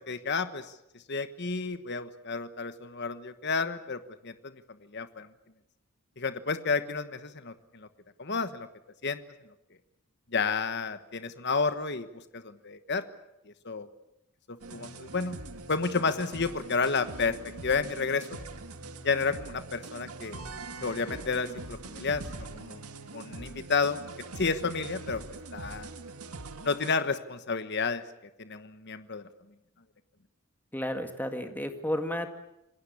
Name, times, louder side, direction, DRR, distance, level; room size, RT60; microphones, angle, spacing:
voice 1, 0.1-0.7 1.1-4.5 4.9-5.3 6.2-7.9 8.2-8.7 9.0-9.2 10.3-12.1 12.3-13.0 13.5-13.9 14.7-15.4 15.7-17.3 17.6-18.4 19.0-20.4 20.8-22.8 23.1-24.0 24.4-25.2 25.5-25.9 26.6-28.0 28.4-29.2, left 4 dB, 50° left, 11 dB, 1.3 m, -31 dB
sound 1, 14.6-26.9, right 3 dB, 90° right, 1.9 m, -43 dB
voice 2, 30.7-32.3, left 1 dB, 10° left, 6 dB, 2.0 m, -32 dB
27.5 x 19.5 x 8.5 m, 0.87 s
head